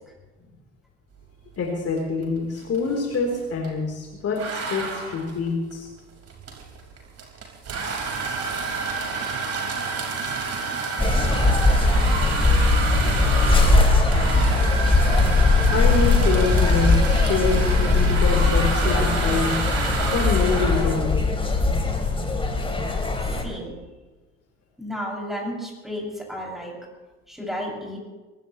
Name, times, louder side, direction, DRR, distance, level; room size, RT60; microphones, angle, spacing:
voice 1, 1.6-5.9 15.7-19.6 20.1-21.1, left 4 dB, 40° left, 0 dB, 3.7 m, -26 dB
sound 1, 2.0-2.2 2.5-3.8 4.3-20.9, right 4 dB, 45° right, 5.0 m, -29 dB
sound 2, 11.0-23.4, left 3 dB, 15° left, 2.9 m, -20 dB
voice 2, 23.4-23.7 24.8-26.7 27.3-28.0, equal, ahead, -2 dB, 6.6 m, -32 dB
23.0 x 17.5 x 3.2 m, 1.2 s
figure-of-eight pair, 65°, 36 cm